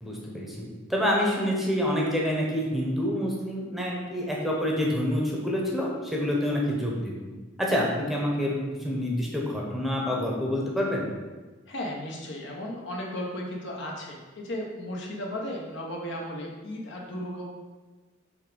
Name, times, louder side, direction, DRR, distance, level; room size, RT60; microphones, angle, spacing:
voice 1, 0.0-7.3 7.6-11.1, equal, ahead, -3 dB, 0.9 m, -27 dB
voice 2, 11.7-17.5, left 1 dB, 65° left, -2 dB, 1.1 m, -35 dB
5.7 x 3.5 x 5.0 m, 1.3 s
head